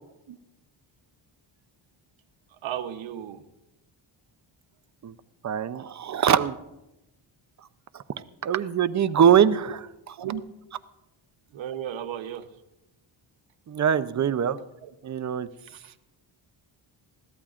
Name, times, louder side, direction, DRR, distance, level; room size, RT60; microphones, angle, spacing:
voice 1, 2.6-3.4 10.2-10.4 11.5-12.5 14.8-14.9 15.7-15.9, right 10 dB, 70° right, 10 dB, 1.0 m, -34 dB
voice 2, 5.4-6.6 7.9-10.1 13.7-14.6 15.0-15.5, right 8 dB, 35° right, 13 dB, 0.6 m, -23 dB
20.5 x 15.0 x 2.5 m, 0.94 s
cardioid pair, 100°, 48 cm